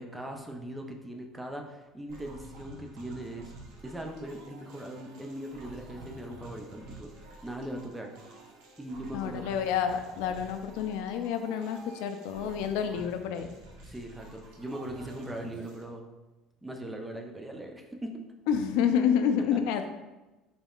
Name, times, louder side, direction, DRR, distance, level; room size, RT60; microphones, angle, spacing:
voice 1, 0.0-3.5 3.8-7.1 7.4-8.1 8.8-9.5 13.8-16.0 16.6-18.2 19.5-19.6, right 1 dB, 5° right, 2 dB, 0.3 m, -40 dB
sound 1, 2.1-15.8, right 2 dB, 75° right, 0.8 m, -49 dB
voice 2, 9.1-13.5 18.5-19.9, left 8 dB, 80° left, 8 dB, 0.3 m, -28 dB
4.0 x 3.5 x 2.3 m, 1.1 s
cardioid pair, 165°, 0 cm